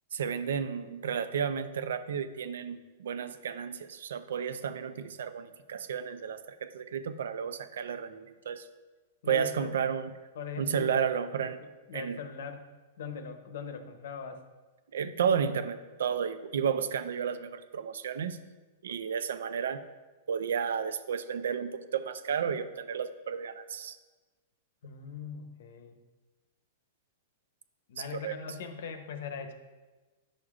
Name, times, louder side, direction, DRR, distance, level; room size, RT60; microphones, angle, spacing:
voice 1, 0.1-8.7 9.3-10.1 10.6-11.6 11.9-12.2 14.9-18.4 18.8-19.8 20.3-24.0 28.0-28.4, right 7 dB, 85° right, 12 dB, 0.5 m, -32 dB
voice 2, 9.2-9.7 10.3-11.3 11.6-12.7 13.0-14.4 24.8-26.0 27.9-29.5, left 6 dB, 70° left, 8 dB, 0.8 m, -40 dB
9.9 x 6.4 x 2.4 m, 1.2 s
supercardioid pair, 160°, 0 cm